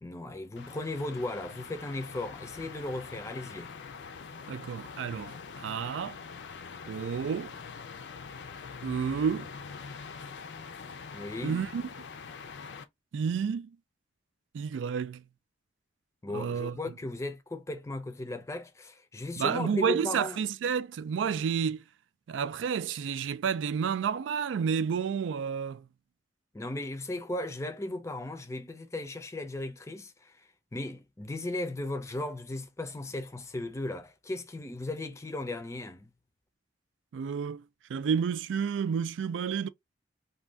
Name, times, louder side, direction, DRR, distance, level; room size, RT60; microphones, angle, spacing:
voice 1, 0.0-3.7 11.1-11.6 16.2-20.4 26.5-36.1, left 2 dB, 15° left, 0.4 m, -36 dB
sound 1, 0.6-12.8, left 5 dB, 70° left, 0.5 m, -44 dB
voice 2, 4.5-6.2 6.9-7.5 8.8-9.5 11.4-11.8 13.1-13.8 14.5-15.2 16.3-16.8 19.4-21.8 22.3-25.8 37.1-37.6 37.9-39.7, right 7 dB, 90° right, 0.3 m, -30 dB
2.5 x 2.2 x 3.2 m
head